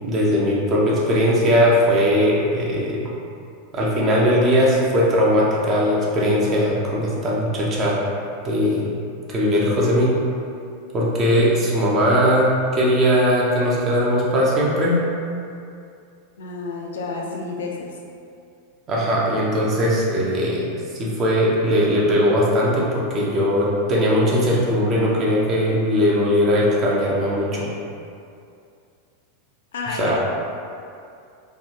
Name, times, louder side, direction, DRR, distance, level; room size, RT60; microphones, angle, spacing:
voice 1, 0.0-3.1 3.7-8.0 8.4-8.9 9.3-10.1 10.9-15.0 18.9-20.7 21.0-27.7 30.0-30.2, equal, 35° right, -5 dB, 0.7 m, -19 dB
voice 2, 16.4-18.0 29.7-30.2, left 3 dB, 65° left, -1 dB, 0.4 m, -30 dB
3.4 x 2.4 x 2.8 m, 2.5 s
figure-of-eight pair, 90°, 0 cm